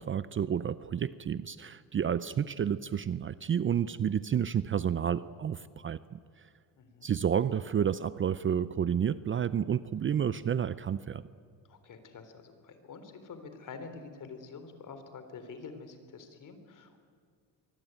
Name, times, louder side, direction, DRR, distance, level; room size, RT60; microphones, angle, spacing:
voice 1, 0.0-6.2 7.0-11.2, right 8 dB, 30° right, 15 dB, 0.6 m, -30 dB
voice 2, 6.7-7.1 11.6-17.0, left 4 dB, 50° left, 9 dB, 3.8 m, -47 dB
24.0 x 23.5 x 9.1 m, 2.1 s
cardioid pair, 130°, 40 cm